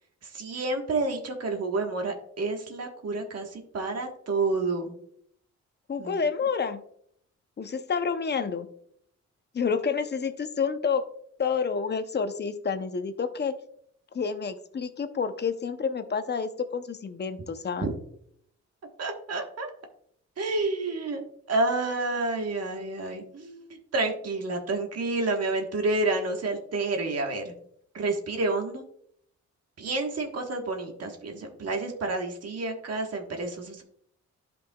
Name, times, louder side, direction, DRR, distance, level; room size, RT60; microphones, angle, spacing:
voice 1, 0.2-4.9 6.0-6.2 17.8-17.9 19.0-19.7 20.4-21.2 21.5-23.6 23.9-27.5 27.9-28.8 29.8-33.8, right 2 dB, 55° right, 3 dB, 1.4 m, -29 dB
voice 2, 5.9-6.8 7.6-8.7 9.5-11.0 11.4-13.5 14.1-17.9, left 5 dB, 35° left, 10 dB, 0.7 m, -29 dB
12.0 x 5.3 x 2.3 m, 0.68 s
cardioid pair, 95°, 29 cm